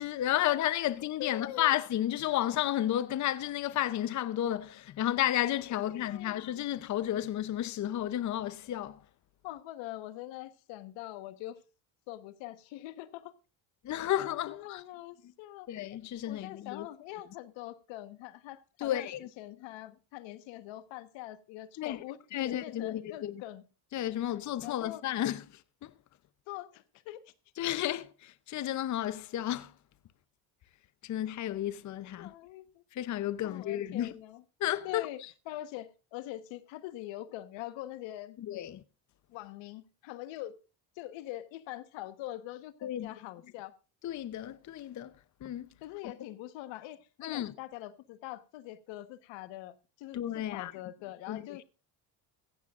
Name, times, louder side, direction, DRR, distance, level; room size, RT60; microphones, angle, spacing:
voice 1, 0.0-9.0 13.8-14.8 15.7-16.9 18.8-19.2 21.8-22.0 22.3-23.4 23.9-25.4 25.8-25.9 27.6-29.7 31.0-32.3 32.9-34.1 34.6-35.1 38.4-38.8 42.8-43.1 44.0-45.1 45.4-45.7 47.2-47.5 50.1-50.7 51.3-51.5, left 12 dB, 40° left, 0.7 m, -32 dB
voice 2, 1.2-1.7 5.7-6.4 9.4-11.6 12.1-13.4 14.5-15.7 16.3-23.6 24.6-25.0 26.5-27.3 32.2-32.8 33.4-34.4 34.8-35.2 35.5-38.4 39.3-40.6 41.0-43.8 45.8-51.6, left 15 dB, 85° left, 1.3 m, -43 dB
15.5 x 15.0 x 2.5 m
cardioid pair, 120°, 44 cm